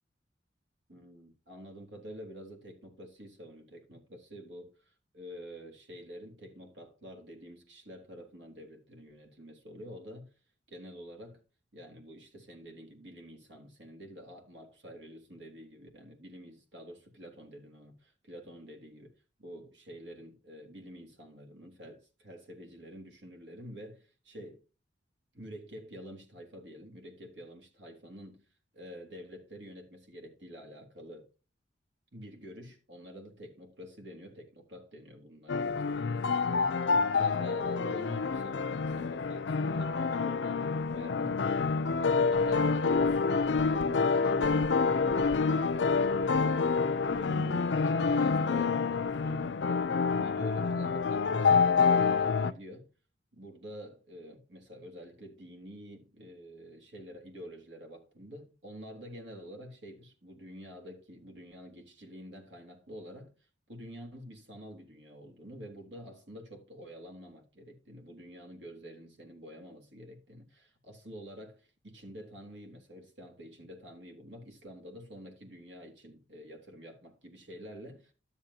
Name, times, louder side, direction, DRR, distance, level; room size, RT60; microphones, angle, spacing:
voice 1, 0.9-10.3 10.7-11.4 11.7-19.1 19.4-24.6 25.3-28.5 28.7-31.3 32.1-36.8 37.1-41.6 42.0-44.7 45.4-46.8 47.1-52.9 53.3-63.3 63.7-78.1, equal, 75° right, 3.5 m, -48 dB
sound 1, 35.5-52.5, left 5 dB, 75° left, 0.5 m, -27 dB
13.0 x 7.3 x 2.8 m
head